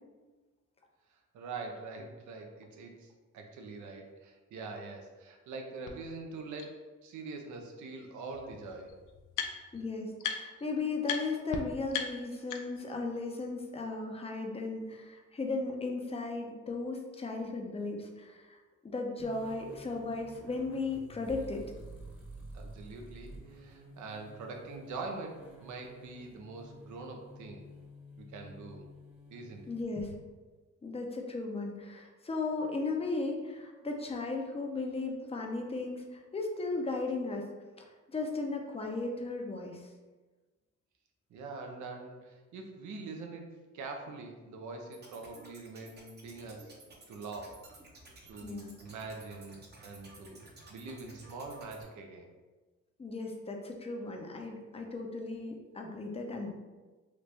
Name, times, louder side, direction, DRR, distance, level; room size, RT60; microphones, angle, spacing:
voice 1, 1.1-8.9 22.5-27.7 28.2-28.8 29.3-29.7 41.3-46.7 47.1-47.6 48.3-52.3, right 3 dB, 75° right, 3 dB, 0.7 m, -44 dB
sound 1, 5.9-6.0 6.6-6.7 8.0-8.1 8.3-9.8 10.2-10.7 11.0-11.2 11.5-11.6 11.9-12.9, left 7 dB, 85° left, 0.5 m, -37 dB
voice 2, 9.7-18.6 18.8-21.6 29.7-30.1 30.8-37.4 38.1-39.8 48.4-48.7 53.0-56.5, left 3 dB, 20° left, 2 dB, 0.5 m, -36 dB
sound 2, 19.2-30.1, right 1 dB, 5° right, 0.9 m, -50 dB
sound 3, 44.9-51.8, right 2 dB, 35° right, 0.8 m, -55 dB
3.1 x 2.5 x 3.2 m, 1.3 s
cardioid pair, 90°, 30 cm